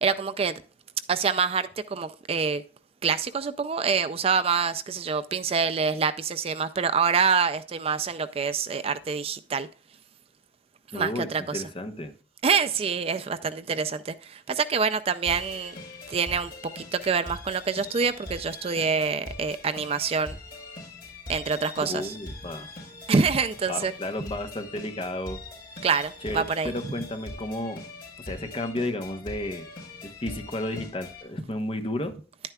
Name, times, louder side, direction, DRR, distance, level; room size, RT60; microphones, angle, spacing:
voice 1, 0.0-0.6 1.1-2.6 3.0-9.7 10.9-11.6 12.4-15.8 16.1-20.4 21.3-22.1 23.1-23.9 25.8-26.7, right 5 dB, 35° right, 0.3 m, -26 dB
voice 2, 10.9-12.1 21.8-22.7 23.7-25.4 26.2-27.8 28.2-29.7 30.0-32.1, left 1 dB, 30° left, 0.9 m, -32 dB
sound 1, 15.2-31.2, left 2 dB, 50° left, 4.4 m, -42 dB
10.5 x 9.0 x 2.3 m
head